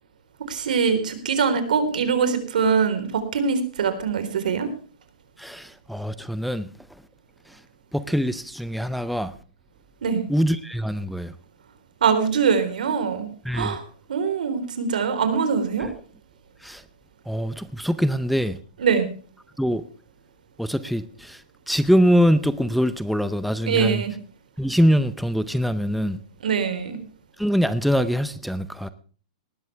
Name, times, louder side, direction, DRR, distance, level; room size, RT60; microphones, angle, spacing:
voice 1, 0.5-4.7 10.0-10.2 12.0-13.8 14.1-15.9 18.8-19.1 23.6-24.1 26.4-27.0, right 6 dB, 90° right, 4.0 m, -23 dB
voice 2, 5.4-6.7 7.9-9.3 10.3-11.3 13.5-13.7 16.6-16.8 17.3-18.6 19.6-19.8 20.6-21.4 21.7-24.0 24.6-26.2 27.4-28.9, equal, ahead, 0.6 m, -23 dB
19.0 x 13.0 x 3.4 m
hypercardioid pair, 170°, 4 cm